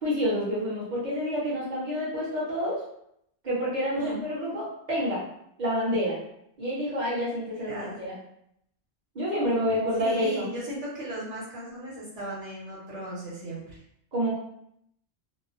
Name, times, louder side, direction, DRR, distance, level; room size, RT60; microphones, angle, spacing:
voice 1, 0.0-2.8 3.4-5.2 5.6-6.2 6.6-8.2 9.1-10.5 14.1-14.3, equal, 40° right, -8 dB, 1.1 m, -28 dB
voice 2, 7.5-8.0 9.6-13.8, right 1 dB, 85° right, -7 dB, 1.5 m, -37 dB
2.9 x 2.0 x 2.5 m, 0.74 s
omnidirectional pair, 1.2 m